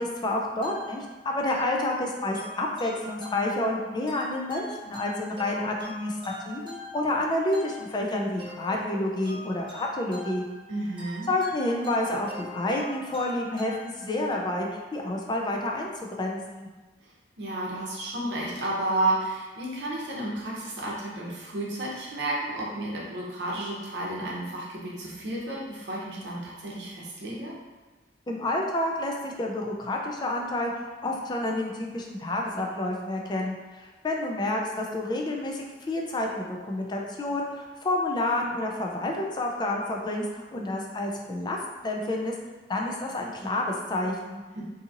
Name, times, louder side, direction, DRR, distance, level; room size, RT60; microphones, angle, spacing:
voice 1, 0.0-10.4 11.3-15.9 16.2-16.7 28.3-30.7 31.0-41.6 41.8-42.3 42.7-44.4, left 1 dB, 25° left, 0 dB, 0.4 m, -29 dB
sound 1, 0.6-14.4, left 2 dB, 30° right, 0.7 m, -44 dB
voice 2, 10.7-11.3 17.4-27.5 44.5-44.6, right 1 dB, 75° right, -4 dB, 0.7 m, -32 dB
2.7 x 2.7 x 2.5 m, 1.3 s
head